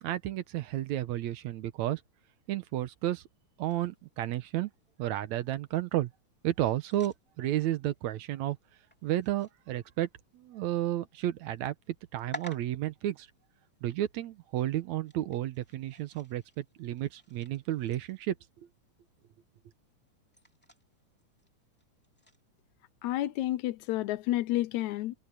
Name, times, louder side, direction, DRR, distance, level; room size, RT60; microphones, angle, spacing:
voice 1, 0.0-2.0 2.5-3.2 3.6-4.7 5.0-6.1 6.4-8.6 9.0-10.1 10.3-11.8 12.1-13.3 13.8-18.4, right 13 dB, 70° right, 2.1 m, -32 dB
sound 1, 3.6-22.5, equal, 5° left, 2.8 m, -54 dB
voice 2, 23.0-25.1, left 15 dB, 75° left, 1.9 m, -30 dB
omnidirectional pair, 3.5 m